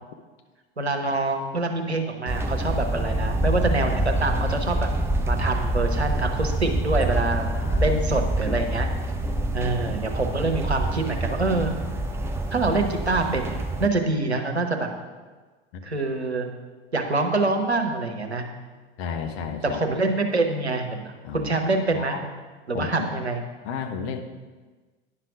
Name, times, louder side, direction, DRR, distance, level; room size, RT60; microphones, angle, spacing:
voice 1, 0.8-4.9 5.2-8.9 9.5-11.7 12.5-14.9 15.8-16.5 16.9-18.4 19.6-22.2 22.7-23.4, right 3 dB, 85° right, 4 dB, 0.9 m, -25 dB
sound 1, 2.3-13.9, right 1 dB, 10° right, 0.7 m, -26 dB
voice 2, 7.6-8.2 15.7-15.8 19.0-20.0 21.2-21.5 21.9-22.2 22.7-23.1 23.6-24.2, left 6 dB, 40° left, 5 dB, 1.0 m, -33 dB
9.9 x 5.9 x 4.9 m, 1.3 s
figure-of-eight pair, 80°, 32 cm